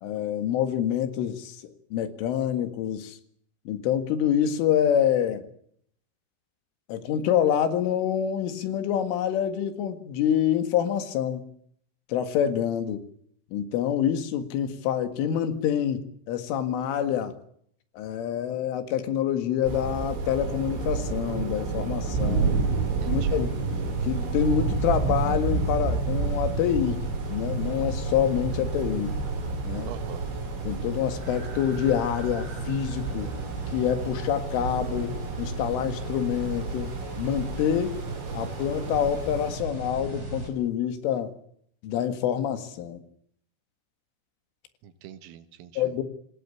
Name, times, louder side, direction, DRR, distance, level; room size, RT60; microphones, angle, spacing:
voice 1, 0.0-3.2 3.7-5.5 6.9-11.5 12.1-13.0 13.5-17.4 18.0-22.6 23.1-23.5 24.0-29.1 29.6-29.9 30.6-33.3 33.7-38.0 38.3-41.3 41.8-43.0 45.8-46.0, left 9 dB, 75° left, 4.3 m, -26 dB
sound 1, 19.6-39.5, right 4 dB, 65° right, 6.3 m, -31 dB
sound 2, 22.1-40.5, right 3 dB, 20° right, 5.8 m, -35 dB
voice 2, 22.8-23.4 29.8-30.2 44.8-46.0, right 11 dB, 85° right, 4.2 m, -44 dB
27.0 x 17.0 x 7.1 m
omnidirectional pair, 5.8 m